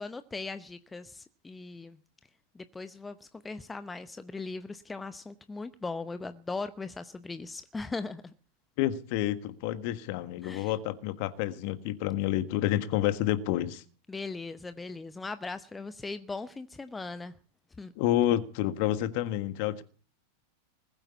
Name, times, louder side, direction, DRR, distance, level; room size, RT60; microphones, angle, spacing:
voice 1, 0.0-2.0 2.5-8.3 10.4-10.7 14.1-17.3 17.8-17.9, left 3 dB, 10° left, 0.8 m, -39 dB
voice 2, 8.8-13.8 18.0-19.8, left 13 dB, 45° left, 1.5 m, -29 dB
20.5 x 9.0 x 7.0 m
figure-of-eight pair, 90°, 0 cm